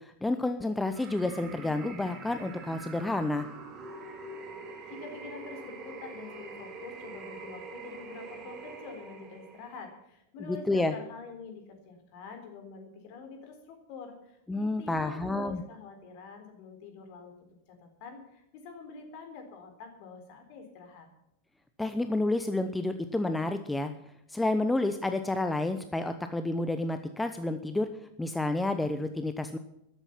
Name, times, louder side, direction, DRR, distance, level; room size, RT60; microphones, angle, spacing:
voice 1, 0.0-3.5 10.5-10.9 14.5-15.6 21.8-23.9 24.3-27.9 28.2-29.6, left 2 dB, 5° left, 9 dB, 0.9 m, -30 dB
sound 1, 0.9-9.9, right 4 dB, 35° right, 3.9 m, -44 dB
voice 2, 4.9-17.3 17.7-21.1, left 5 dB, 45° left, 6 dB, 3.9 m, -46 dB
13.5 x 12.5 x 5.8 m, 0.83 s
figure-of-eight pair, 90°, 0 cm